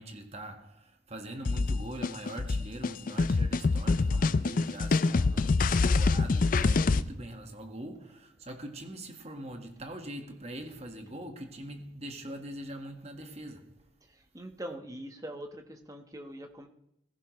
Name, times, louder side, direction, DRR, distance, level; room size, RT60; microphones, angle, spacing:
voice 1, 0.0-13.9, right 1 dB, 35° right, 1.6 m, -43 dB
sound 1, 1.5-7.0, left 3 dB, 45° left, 0.4 m, -26 dB
voice 2, 5.1-5.5 14.0-16.7, right 1 dB, 20° right, 1.3 m, -43 dB
16.5 x 15.0 x 3.2 m
head